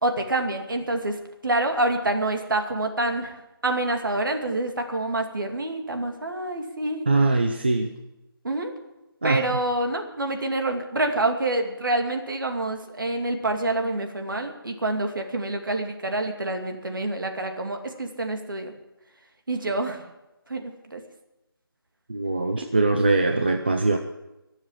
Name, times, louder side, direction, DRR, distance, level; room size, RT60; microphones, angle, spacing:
voice 1, 0.0-1.1 1.4-3.3 3.6-7.1 8.4-8.7 9.2-18.7 19.5-20.0 20.5-21.0, right 2 dB, 60° right, 5 dB, 2.5 m, -27 dB
voice 2, 7.1-8.0 9.2-9.4 22.1-24.0, right 2 dB, 25° right, 5 dB, 0.6 m, -22 dB
22.0 x 7.5 x 7.4 m, 0.96 s
figure-of-eight pair, 180°, 13 cm